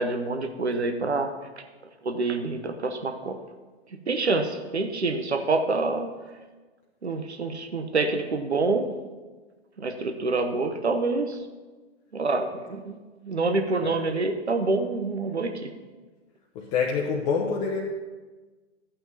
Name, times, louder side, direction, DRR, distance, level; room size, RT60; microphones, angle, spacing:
voice 1, 0.0-1.3 2.0-3.4 4.1-6.1 7.0-8.9 9.8-11.4 12.1-13.0 13.2-15.7, right 3 dB, 80° right, 6 dB, 0.9 m, -26 dB
voice 2, 16.5-17.8, left 5 dB, 35° left, -2 dB, 1.0 m, -26 dB
14.0 x 8.8 x 2.8 m, 1.3 s
figure-of-eight pair, 105°, 33 cm